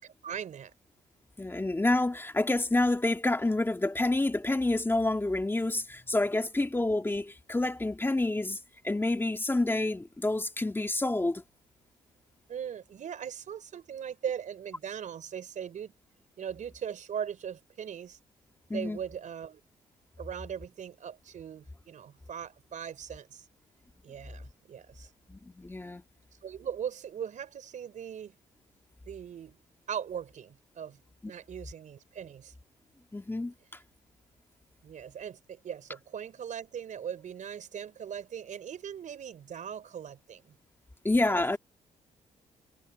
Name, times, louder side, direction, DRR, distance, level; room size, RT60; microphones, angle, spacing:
voice 1, 0.0-0.7 12.5-15.9 16.4-18.2 18.7-19.6 20.2-23.5 24.0-25.1 26.4-28.3 29.0-29.6 29.9-31.0 31.3-32.5 34.8-40.6 41.2-41.6, right 8 dB, 60° right, 4.6 m, -39 dB
voice 2, 1.4-8.6 8.8-11.4 18.7-19.0 25.3-26.0 33.1-33.5 41.0-41.6, left 2 dB, 15° left, 2.2 m, -28 dB
cardioid pair, 70°, 14 cm